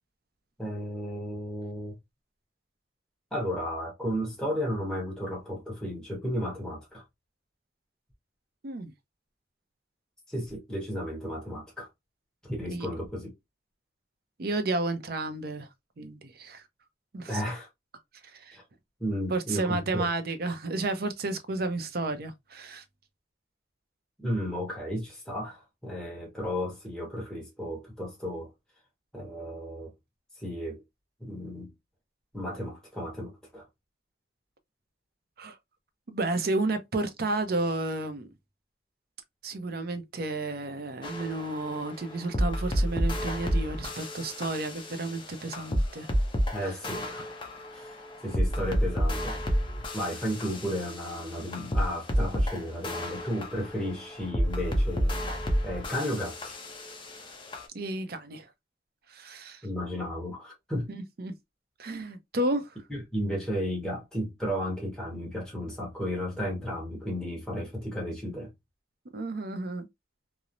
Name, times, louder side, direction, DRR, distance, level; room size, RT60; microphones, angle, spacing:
voice 1, 0.6-2.0 3.3-7.0 10.3-11.9 12.4-13.3 17.3-17.7 18.5-18.6 19.0-20.1 24.2-28.5 29.1-29.9 30.4-30.8 31.2-31.7 32.3-33.6 46.5-47.2 47.7-49.4 49.9-55.1 55.6-56.6 59.6-60.9 61.9-62.0 62.9-68.5, equal, 5° left, 1.0 m, -33 dB
voice 2, 14.4-15.7 16.0-16.6 17.1-17.4 18.3-18.6 19.3-22.8 35.4-35.6 36.1-38.3 39.4-46.1 57.7-58.5 59.1-59.6 60.9-61.3 61.8-62.8 69.1-69.9, right 2 dB, 55° right, 0.5 m, -32 dB
sound 1, 41.0-57.6, equal, 25° left, 0.5 m, -30 dB
2.9 x 2.0 x 2.5 m
head